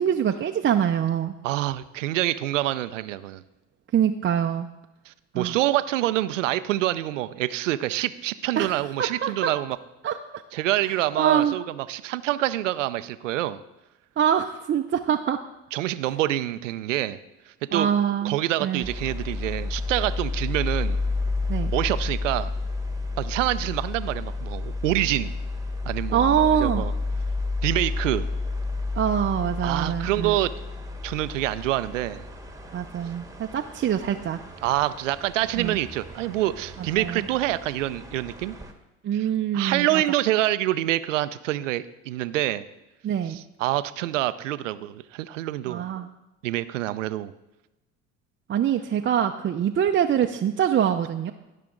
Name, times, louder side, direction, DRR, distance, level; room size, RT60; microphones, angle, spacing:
voice 1, 0.0-1.3 3.9-4.7 5.4-5.6 8.6-8.7 9.0-9.5 10.0-10.4 11.1-11.5 14.2-15.4 17.7-18.3 18.6-18.9 21.5-21.7 26.1-26.8 29.0-30.4 32.7-34.4 35.6-35.8 37.0-37.3 39.0-40.0 43.0-43.4 45.7-46.1 48.5-51.3, right 9 dB, 35° right, 5 dB, 0.6 m, -24 dB
voice 2, 1.4-3.4 5.1-9.8 10.5-13.6 15.7-17.2 17.7-17.9 18.2-21.0 21.7-22.5 23.2-25.3 25.9-26.9 27.6-28.2 29.6-30.5 31.0-32.2 34.6-38.6 39.1-39.3 39.5-42.6 43.3-45.9 46.4-47.3, right 15 dB, 90° right, 15 dB, 0.5 m, -26 dB
sound 1, 18.8-38.7, left 3 dB, 10° right, 1.3 m, -31 dB
16.0 x 5.9 x 3.8 m, 1.0 s
hypercardioid pair, 70°, 36 cm